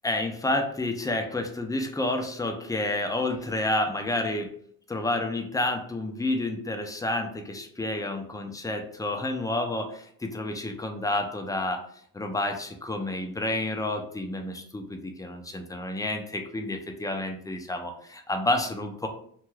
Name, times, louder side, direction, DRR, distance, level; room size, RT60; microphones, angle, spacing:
voice 1, 0.0-4.5 4.9-11.8 12.1-19.1, left 2 dB, 10° left, 4 dB, 0.4 m, -30 dB
2.6 x 2.3 x 3.2 m, 0.62 s
supercardioid pair, 70°, 45 cm